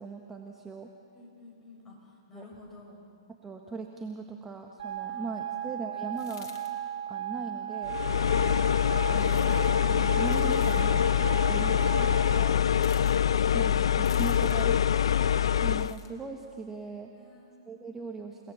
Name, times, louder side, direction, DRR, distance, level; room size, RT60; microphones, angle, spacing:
voice 1, 0.0-0.9 2.3-2.5 3.4-6.5 7.1-8.0 9.0-12.6 13.4-14.8 15.6-17.1 17.7-18.5, right 4 dB, 10° right, 2 dB, 1.6 m, -39 dB
voice 2, 1.1-3.0 5.1-5.6 17.2-17.7, left 2 dB, 15° left, -3 dB, 7.5 m, -53 dB
sound 1, 4.8-12.4, right 10 dB, 65° right, 5.0 m, -36 dB
sound 2, 6.1-6.7 9.2-9.7 10.2-10.9 12.8-13.2 14.1-14.7 15.7-16.1, left 8 dB, 55° left, 2.9 m, -51 dB
sound 3, 7.9-15.9, left 9 dB, 75° left, 0.6 m, -25 dB
30.0 x 18.5 x 7.3 m, 2.6 s
hypercardioid pair, 125°, 3 cm